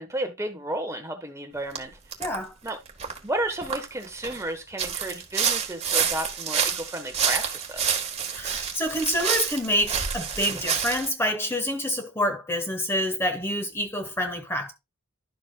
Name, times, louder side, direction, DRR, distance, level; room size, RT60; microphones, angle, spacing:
voice 1, 0.0-2.0 2.6-2.8 3.2-7.8 10.5-10.6, right 1 dB, 15° right, 1.2 m, -32 dB
sound 1, 1.8-1.9 2.1-2.4 2.7-4.4 4.8-11.1, right 7 dB, 30° right, 1.5 m, -28 dB
voice 2, 2.2-2.5 8.3-14.7, equal, 10° left, 1.2 m, -27 dB
11.5 x 7.2 x 2.3 m
head